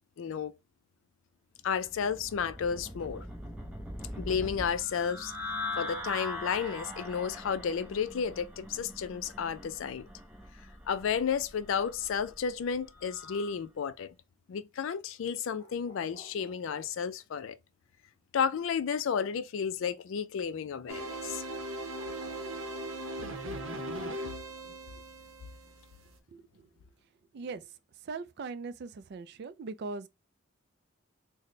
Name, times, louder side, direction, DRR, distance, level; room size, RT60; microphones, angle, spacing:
voice 1, 0.2-0.5 1.6-3.3 4.2-5.3 5.8-10.1 10.9-14.1 14.5-17.6 18.3-21.4, left 7 dB, 65° left, 0.3 m, -32 dB
sound 1, 1.7-13.6, left 1 dB, 5° right, 0.6 m, -42 dB
sound 2, 15.5-17.3 21.9-24.2 25.7-25.8, left 1 dB, 25° left, 1.2 m, -56 dB
sound 3, 20.9-26.1, right 1 dB, 70° right, 0.7 m, -39 dB
voice 2, 28.1-30.1, right 4 dB, 50° right, 0.3 m, -40 dB
4.1 x 2.1 x 3.1 m
head